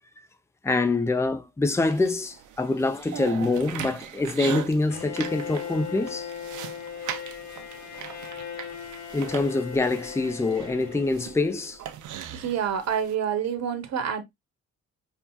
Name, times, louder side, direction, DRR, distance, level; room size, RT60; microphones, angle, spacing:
voice 1, 0.6-6.3 9.1-11.8, left 3 dB, 10° left, 0.6 m, -25 dB
sound 1, 1.8-13.2, right 10 dB, 80° right, 0.7 m, -40 dB
Bowed string instrument, 4.9-11.8, left 8 dB, 60° left, 1.0 m, -38 dB
voice 2, 12.3-14.2, right 8 dB, 60° right, 1.0 m, -27 dB
5.5 x 2.4 x 2.3 m
cardioid pair, 90°, 30 cm